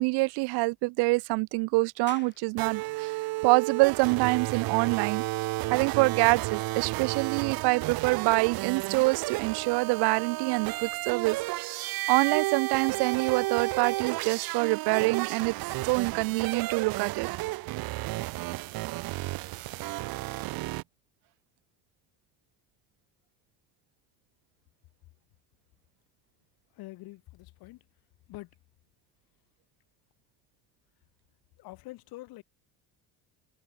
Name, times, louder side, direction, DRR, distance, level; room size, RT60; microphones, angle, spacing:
voice 1, 0.0-5.2 5.7-11.4 12.1-15.5 15.8-17.3, right 26 dB, 80° right, 0.6 m, -26 dB
sound 1, 2.1-15.2, left 7 dB, 30° left, 6.2 m, -60 dB
sound 2, 2.6-20.8, right 20 dB, 65° right, 1.3 m, -32 dB
voice 2, 26.7-27.8 28.3-28.5 31.6-32.4, left 19 dB, 70° left, 4.2 m, -45 dB
cardioid pair, 175°, 38 cm